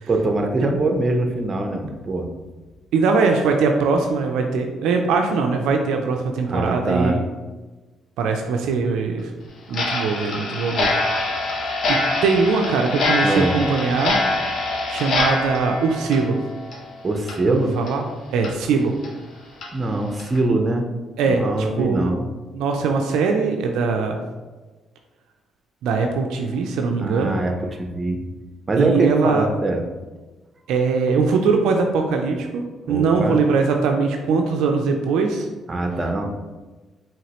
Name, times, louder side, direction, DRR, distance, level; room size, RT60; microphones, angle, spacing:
voice 1, 0.1-2.3 6.5-7.2 13.2-13.6 17.0-17.8 19.7-20.8 21.2-22.3 27.0-28.2 28.7-29.9 32.9-33.4 35.7-36.3, right 2 dB, 35° right, 4 dB, 0.7 m, -23 dB
voice 2, 2.9-7.2 8.2-9.3 9.7-11.0 11.9-14.2 14.9-16.4 17.5-18.1 18.3-18.9 21.2-22.1 22.5-24.2 25.8-27.4 28.8-29.5 30.7-35.5, right 4 dB, 85° right, 3 dB, 0.4 m, -21 dB
Clock, 9.7-16.9 17.2-17.4 17.9-18.0 18.4-18.5 19.0-19.1 19.6-19.7 20.2-20.4, left 2 dB, 65° left, 0.8 m, -24 dB
4.9 x 3.1 x 2.9 m, 1.2 s
supercardioid pair, 70°, 0 cm